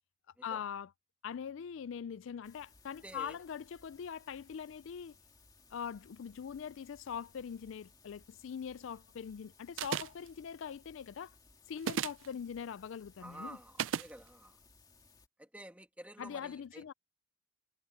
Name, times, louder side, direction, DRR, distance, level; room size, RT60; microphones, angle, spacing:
voice 1, 0.4-0.9 1.2-5.2 5.7-11.3 11.7-13.6 16.2-16.9, left 7 dB, 75° left, 0.4 m, -42 dB
sound 1, 2.4-15.3, left 4 dB, 20° left, 2.1 m, -63 dB
voice 2, 3.0-3.4 13.2-14.6 15.4-16.9, right 1 dB, 5° right, 1.8 m, -50 dB
sound 2, 9.8-10.3 11.8-12.3 13.8-14.1, right 8 dB, 75° right, 0.4 m, -34 dB
head